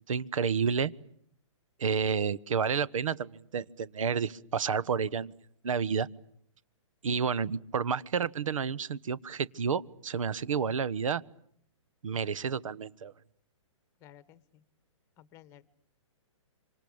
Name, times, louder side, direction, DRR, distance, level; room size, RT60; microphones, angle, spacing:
voice 1, 0.1-0.9 1.8-5.3 5.6-6.1 7.0-11.2 12.0-13.1, right 6 dB, 80° right, 21 dB, 1.1 m, -30 dB
voice 2, 14.0-14.6 15.2-15.6, left 11 dB, 15° left, 17 dB, 1.1 m, -55 dB
26.0 x 25.5 x 8.7 m, 0.64 s
hypercardioid pair, 165°, 17 cm